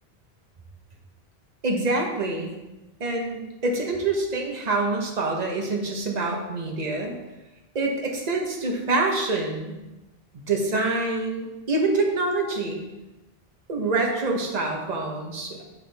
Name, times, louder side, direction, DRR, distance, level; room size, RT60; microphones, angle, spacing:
voice 1, 1.6-2.5 3.0-7.1 7.7-9.8 10.3-12.8 13.7-15.6, right 2 dB, 40° right, 1 dB, 1.1 m, -26 dB
7.1 x 6.1 x 3.4 m, 1.1 s
omnidirectional pair, 1.1 m